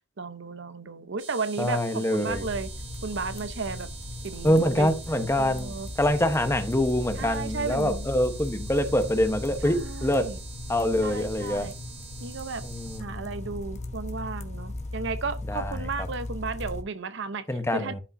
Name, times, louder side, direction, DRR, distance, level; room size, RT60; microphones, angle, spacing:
voice 1, 0.2-2.7 3.0-3.9 4.2-4.9 5.4-5.9 7.2-8.1 9.6-10.4 11.0-11.7 12.2-12.6 13.0-17.4 17.7-17.9, right 4 dB, 65° right, 0.8 m, -34 dB
sound 1, 1.2-13.0, right 5 dB, 85° right, 3.7 m, -46 dB
voice 2, 1.6-2.5 4.4-10.3 10.7-11.7 12.6-13.3 15.5-16.1 17.5-18.0, left 1 dB, 15° left, 1.0 m, -25 dB
sound 2, 2.3-16.8, left 2 dB, 35° left, 1.2 m, -37 dB
11.5 x 5.4 x 2.7 m
head